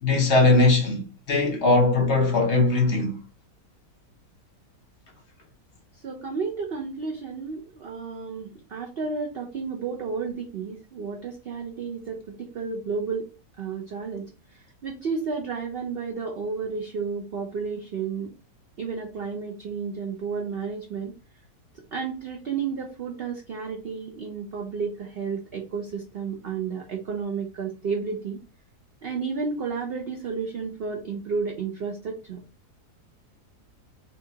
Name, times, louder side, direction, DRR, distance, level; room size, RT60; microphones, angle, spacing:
voice 1, 0.0-1.0 1.3-3.1, left 3 dB, 50° left, 1.1 m, -20 dB
voice 2, 5.9-13.3 13.6-18.3 18.8-21.1 21.9-28.4 29.0-32.4, right 5 dB, 85° right, 0.5 m, -32 dB
4.2 x 2.4 x 2.7 m
omnidirectional pair, 1.7 m